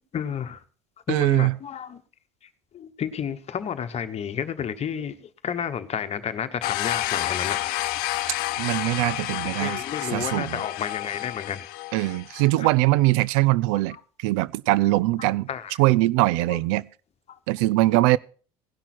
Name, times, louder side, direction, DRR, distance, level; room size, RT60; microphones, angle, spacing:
voice 1, 0.1-0.6 1.1-2.0 2.4-7.8 9.6-11.6 12.5-12.7 13.9-14.0 15.2-15.8 16.5-16.6 17.3-17.4, left 8 dB, 40° left, 1.1 m, -31 dB
voice 2, 1.1-1.5 8.6-9.8 10.1-10.6 11.9-15.5 15.8-16.9 17.5-18.2, right 19 dB, 75° right, 0.4 m, -22 dB
sound 1, 6.6-12.5, left 16 dB, 65° left, 0.7 m, -30 dB
17.5 x 6.0 x 4.2 m
hypercardioid pair, 80°, 17 cm